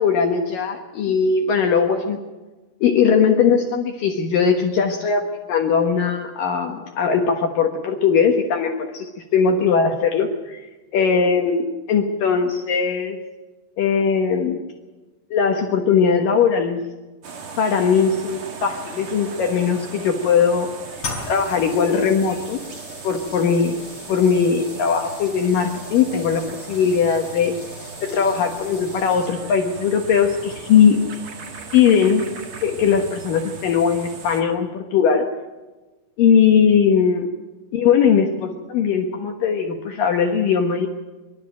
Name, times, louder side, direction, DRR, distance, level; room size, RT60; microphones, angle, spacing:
voice 1, 0.0-2.2 2.8-10.6 10.9-13.2 13.8-14.6 15.3-16.9 17.6-20.7 21.3-22.6 23.0-23.8 24.1-27.5 28.0-31.0 31.7-32.3 32.6-35.3 36.2-37.3 37.7-40.9, left 6 dB, 65° left, 4 dB, 2.5 m, -19 dB
sound 1, 17.2-34.4, right 4 dB, 45° right, 1.9 m, -38 dB
sound 2, 21.0-29.6, left 3 dB, 40° left, 5.4 m, -39 dB
24.5 x 12.5 x 9.2 m, 1.2 s
omnidirectional pair, 4.9 m